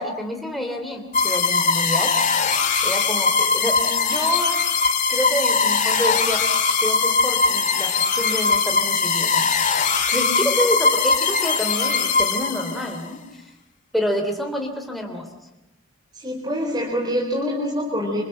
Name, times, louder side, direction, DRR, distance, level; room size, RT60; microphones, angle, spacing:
voice 1, 0.0-2.1 2.8-4.6 5.1-6.4 6.8-9.4 10.1-13.5 13.9-15.3, equal, ahead, 2 dB, 3.2 m, -28 dB
sound 1, 1.1-13.0, left 5 dB, 35° left, 2.0 m, -21 dB
voice 2, 16.1-18.2, equal, 20° right, -2 dB, 4.2 m, -25 dB
28.0 x 27.0 x 7.7 m, 0.91 s
head